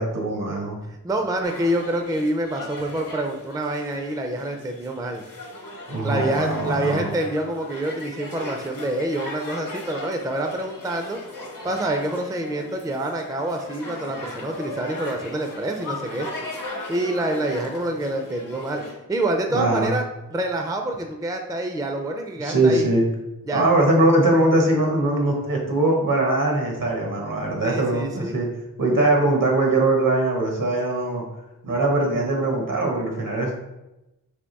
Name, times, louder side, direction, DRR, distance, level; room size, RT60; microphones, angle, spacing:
voice 1, 0.0-0.8 5.9-7.1 19.5-19.9 22.4-23.0 23.5-28.5 28.8-31.2 31.6-33.5, right 2 dB, 70° right, 0 dB, 1.1 m, -21 dB
voice 2, 0.9-5.2 6.0-11.2 11.6-16.3 16.9-18.8 19.1-20.1 20.3-22.9 23.5-23.7 27.6-28.3, right 1 dB, 10° right, 4 dB, 0.4 m, -27 dB
sound 1, 1.4-18.9, left 2 dB, 70° left, 0.9 m, -38 dB
3.5 x 2.9 x 4.0 m, 0.94 s
wide cardioid pair, 65°, 34 cm